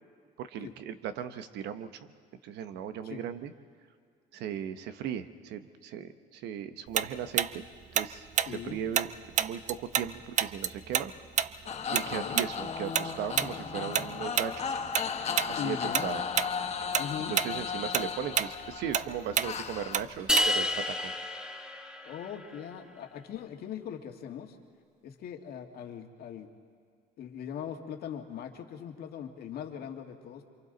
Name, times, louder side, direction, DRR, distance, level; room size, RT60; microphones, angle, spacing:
voice 1, 0.4-1.9 2.4-3.5 4.3-7.6 7.9-9.1 9.4-11.1 11.9-14.8 15.1-15.8 16.0-16.2 17.3-20.7 21.0-21.1, right 9 dB, 85° right, 10 dB, 1.1 m, -37 dB
Tick-tock, 6.9-10.1 10.4-15.1 15.4-15.6 15.9-16.5 16.8-20.8, right 9 dB, 45° right, 0.6 m, -29 dB
voice 2, 8.5-8.8 12.0-12.4 15.6-16.1 17.0-17.3 22.0-24.6 25.0-26.5 27.2-30.4, left 9 dB, 65° left, 4 dB, 2.0 m, -40 dB
sound 1, 11.7-20.0, left 6 dB, 40° left, 1.5 m, -35 dB
sound 2, 20.3-22.6, left 1 dB, 5° right, 1.3 m, -30 dB
28.0 x 25.5 x 4.0 m, 2.2 s
cardioid pair, 110°, 17 cm